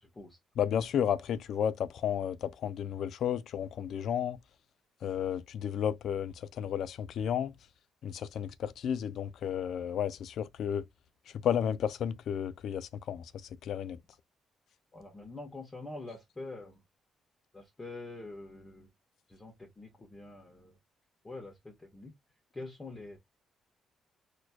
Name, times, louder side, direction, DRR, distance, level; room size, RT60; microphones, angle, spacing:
voice 1, 0.0-0.4 14.9-16.8 17.5-18.9 19.3-20.8 21.2-22.1 22.5-23.2, left 2 dB, 25° left, 1.4 m, -45 dB
voice 2, 0.6-4.4 5.0-7.5 8.0-10.8 11.4-13.2 13.6-14.0, left 9 dB, 70° left, 0.4 m, -32 dB
4.2 x 3.1 x 2.3 m
cardioid pair, 90°, 0 cm